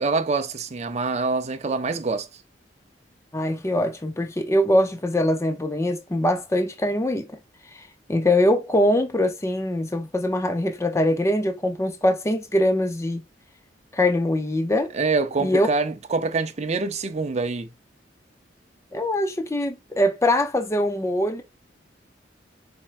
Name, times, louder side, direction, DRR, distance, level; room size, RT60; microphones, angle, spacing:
voice 1, 0.0-2.3 14.9-17.7, right 3 dB, 40° right, 0.5 m, -25 dB
voice 2, 3.3-7.3 7.7-13.2 13.9-14.9 15.4-15.7 18.9-21.4, left 1 dB, 15° left, 0.5 m, -23 dB
4.4 x 4.3 x 2.5 m
head